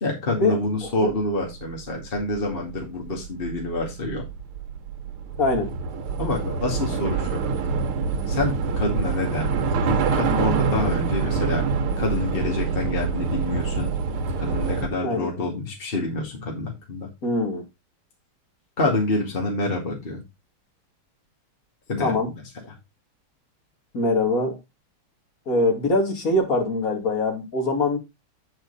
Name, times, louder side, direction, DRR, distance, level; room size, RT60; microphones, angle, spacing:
voice 1, 0.0-4.2 6.2-7.4 8.3-11.6 12.0-13.9 14.4-17.1 18.8-20.2 21.9-22.4, left 2 dB, 25° left, 2.3 m, -27 dB
Train / Subway metro underground, 1.5-1.6 1.9-14.9, right 5 dB, 80° right, 2.0 m, -26 dB
voice 2, 5.4-5.7 15.0-15.3 17.2-17.6 22.0-22.3 23.9-24.6 25.5-28.0, left 2 dB, 40° left, 2.7 m, -23 dB
9.1 x 5.5 x 4.1 m
omnidirectional pair, 2.4 m